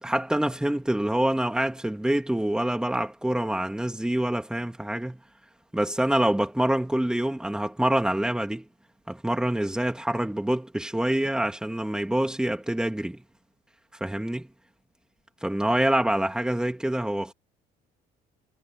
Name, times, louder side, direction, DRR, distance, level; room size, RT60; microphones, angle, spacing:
voice 1, 0.0-5.2 5.7-8.7 9.1-13.2 14.0-14.5 15.4-17.3, right 1 dB, 5° right, 2.9 m, -26 dB
cardioid pair, 110°, 17 cm